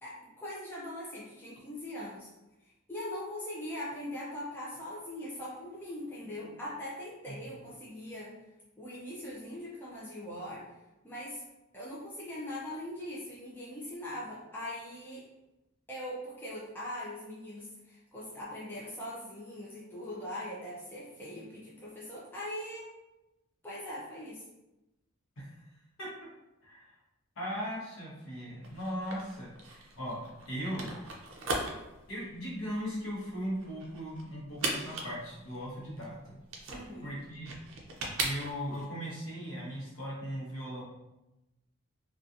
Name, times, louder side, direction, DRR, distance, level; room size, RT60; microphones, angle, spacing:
voice 1, 0.0-2.3 2.9-8.3 8.8-10.6 11.0-11.4 11.7-15.3 15.9-22.9 23.6-24.4 36.7-37.1, left 1 dB, 10° left, -7 dB, 0.4 m, -41 dB
voice 2, 26.6-26.9 27.4-30.9 32.1-36.4 37.0-37.6 38.2-40.8, equal, 70° left, -5 dB, 0.9 m, -38 dB
sound 1, 28.6-38.9, right 2 dB, 70° right, 0.5 m, -39 dB
2.6 x 2.4 x 2.4 m, 0.97 s
head